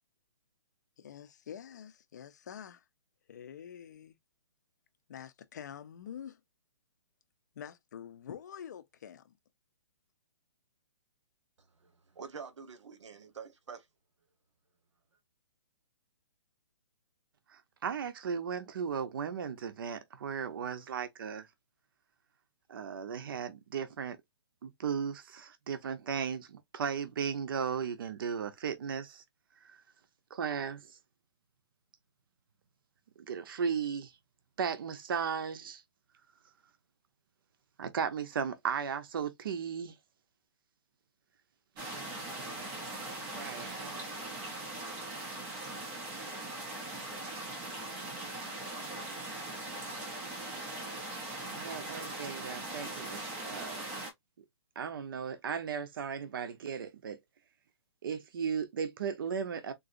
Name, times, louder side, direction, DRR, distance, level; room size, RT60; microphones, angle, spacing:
voice 1, 1.0-2.8 3.3-4.2 5.1-6.4 7.5-9.2, left 8 dB, 40° left, 0.5 m, -46 dB
voice 2, 11.6-13.9, right 6 dB, 80° right, 1.1 m, -47 dB
voice 3, 17.5-21.5 22.7-24.2 24.6-29.2 30.3-30.8 33.2-34.1 34.6-35.8 37.8-39.9 43.0-44.0 51.5-53.8 54.8-57.2 58.0-59.7, right 7 dB, 50° right, 0.6 m, -36 dB
sound 1, 41.8-54.1, right 2 dB, 10° right, 0.5 m, -40 dB
3.8 x 2.6 x 2.5 m
hypercardioid pair, 170°, 15 cm